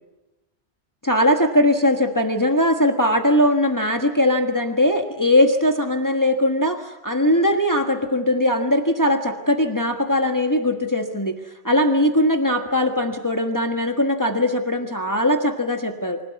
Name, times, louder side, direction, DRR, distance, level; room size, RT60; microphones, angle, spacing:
voice 1, 1.0-11.3 11.6-16.2, left 1 dB, 15° left, 4 dB, 1.5 m, -20 dB
26.0 x 16.0 x 9.4 m, 1.1 s
omnidirectional pair, 1.1 m